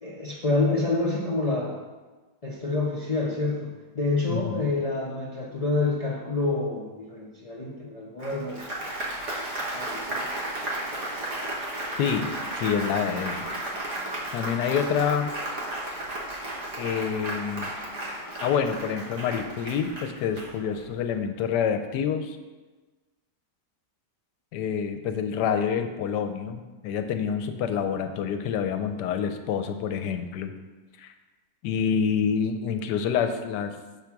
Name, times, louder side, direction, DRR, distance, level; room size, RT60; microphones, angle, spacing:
voice 1, 0.0-1.7 2.4-8.7 9.2-9.3 9.7-10.3, left 3 dB, 70° left, -4 dB, 0.3 m, -28 dB
voice 2, 4.3-4.7 12.0-12.3 12.6-13.4 14.3-15.3 16.8-17.7 18.4-22.4 24.5-30.5 31.0-31.1 31.6-33.7, left 7 dB, 85° left, 8 dB, 1.2 m, -27 dB
Applause, 8.2-20.9, right 1 dB, 50° right, 1.5 m, -34 dB
6.5 x 3.5 x 5.8 m, 1.2 s
omnidirectional pair, 1.8 m